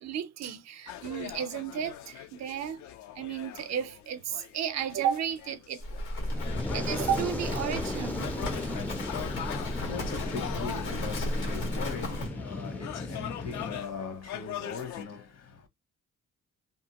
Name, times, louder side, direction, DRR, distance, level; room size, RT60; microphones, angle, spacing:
voice 1, 0.0-2.8 3.2-5.8 6.7-8.3, right 9 dB, 60° right, 0.5 m, -33 dB
sound 1, 0.9-15.0, left 11 dB, 70° left, 0.5 m, -42 dB
Livestock farm animals working animals, 5.8-12.3, left 1 dB, 90° left, 1.5 m, -35 dB
Fire, 6.2-13.8, left 1 dB, 5° left, 0.4 m, -36 dB
voice 2, 8.9-15.7, left 5 dB, 55° left, 0.9 m, -40 dB
2.6 x 2.1 x 2.8 m
cardioid pair, 90°, 30 cm